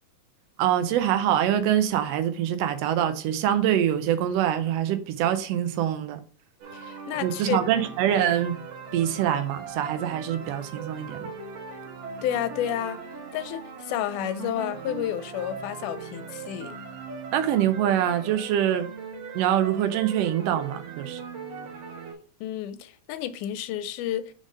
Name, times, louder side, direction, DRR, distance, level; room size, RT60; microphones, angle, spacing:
voice 1, 0.6-6.2 7.2-8.5 8.9-11.3 17.3-18.9 19.3-21.2, right 10 dB, 75° right, 1.5 m, -24 dB
sound 1, 6.6-22.1, right 4 dB, 60° right, 2.0 m, -39 dB
voice 2, 6.7-7.6 12.2-13.0 13.3-16.8 22.4-24.2, left 11 dB, 85° left, 2.1 m, -30 dB
5.1 x 3.8 x 5.2 m
omnidirectional pair, 3.6 m